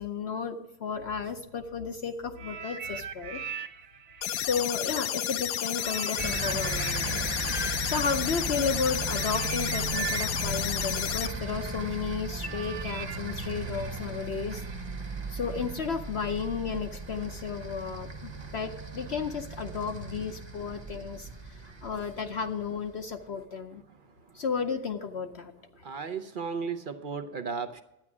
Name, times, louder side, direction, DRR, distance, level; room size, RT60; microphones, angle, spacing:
voice 1, 0.0-3.4 4.3-14.6 15.3-21.5 21.8-23.8 24.3-25.5, left 5 dB, 55° left, 7 dB, 0.7 m, -33 dB
sound 1, 2.4-5.3 5.8-14.7 15.5-15.6, right 8 dB, 80° right, 1.4 m, -40 dB
sound 2, 4.2-11.3, left 12 dB, 80° left, 1.2 m, -32 dB
sound 3, 6.2-23.0, right 3 dB, 20° right, 0.9 m, -37 dB
voice 2, 25.8-27.8, right 5 dB, 60° right, 8 dB, 0.5 m, -35 dB
12.0 x 9.5 x 6.0 m, 0.91 s
omnidirectional pair, 1.8 m